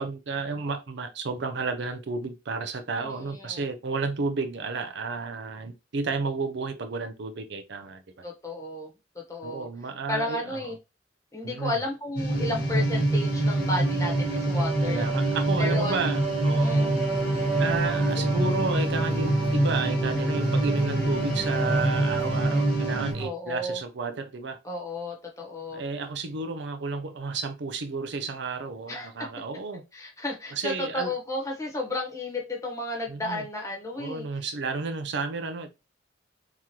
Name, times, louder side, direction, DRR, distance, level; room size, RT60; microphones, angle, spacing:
voice 1, 0.0-8.0 9.4-10.7 11.4-11.8 14.8-16.8 17.6-24.6 25.7-29.8 30.5-31.1 33.1-33.4 34.0-35.7, right 4 dB, 65° right, 0.5 m, -32 dB
voice 2, 3.0-3.6 8.2-8.9 9.1-9.7 10.1-10.7 11.3-15.0 15.6-16.0 16.6-16.9 23.2-23.8 24.6-25.8 28.9-29.3 29.9-34.2, left 2 dB, 15° left, 1.0 m, -33 dB
sound 1, 12.2-23.1, right 1 dB, 50° left, 1.0 m, -26 dB
sound 2, 12.3-23.3, right 4 dB, 35° right, 1.4 m, -32 dB
3.7 x 3.0 x 2.9 m
head